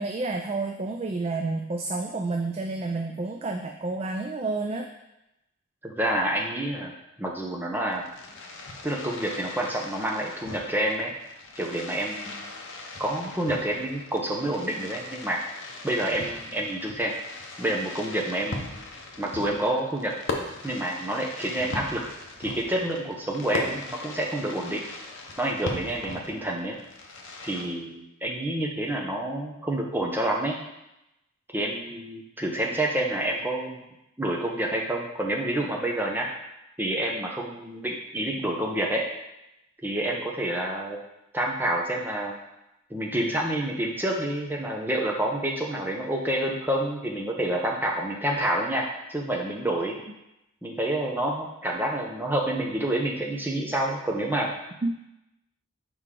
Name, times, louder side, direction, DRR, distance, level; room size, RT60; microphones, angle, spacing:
voice 1, 0.0-4.9 54.8-54.9, right 3 dB, 30° right, 3 dB, 0.3 m, -30 dB
voice 2, 5.8-6.9 7.2-8.0 8.8-11.1 11.6-12.4 13.0-15.4 15.8-17.1 17.6-18.7 19.2-20.1 20.6-22.0 22.4-24.8 25.4-26.8 27.4-30.5 31.5-33.8 34.2-36.3 36.8-39.0 39.8-41.0 41.3-42.3 42.9-48.8 49.1-50.0 50.6-54.5, right 1 dB, 10° right, -1 dB, 0.7 m, -28 dB
Fireworks, 7.8-27.6, left 2 dB, 60° left, 0.8 m, -39 dB
6.4 x 4.8 x 3.7 m, 0.91 s
head